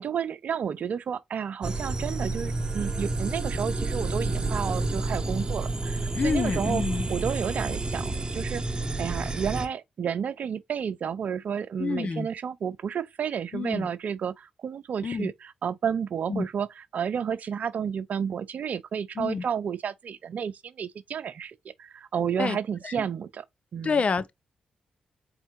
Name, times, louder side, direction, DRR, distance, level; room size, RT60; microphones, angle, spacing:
voice 1, 0.0-6.8 7.1-8.6 9.0-23.4 23.7-24.0, right 7 dB, 60° right, 0.4 m, -31 dB
sound 1, 1.6-9.7, right 2 dB, 25° right, 0.8 m, -30 dB
voice 2, 6.1-7.1 11.8-12.3 13.5-13.9 15.0-15.3 16.3-16.4 19.2-19.4 22.4-22.6 22.8-22.9 23.8-24.3, left 5 dB, 45° left, 0.5 m, -28 dB
4.3 x 3.4 x 2.9 m
hypercardioid pair, 40°, 3 cm